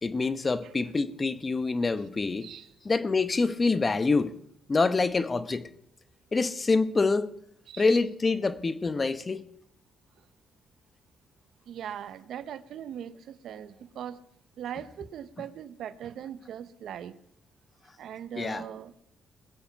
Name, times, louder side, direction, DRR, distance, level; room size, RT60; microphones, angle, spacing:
voice 1, 0.0-2.5 2.8-4.4 4.7-5.7 6.3-7.3 7.8-9.4 18.4-18.6, left 3 dB, 30° left, 1.0 m, -26 dB
voice 2, 2.4-2.7 7.7-7.9 11.7-14.2 14.6-17.2 18.0-18.9, right 9 dB, 75° right, 0.8 m, -40 dB
21.0 x 8.2 x 5.9 m
cardioid pair, 75°, 0 cm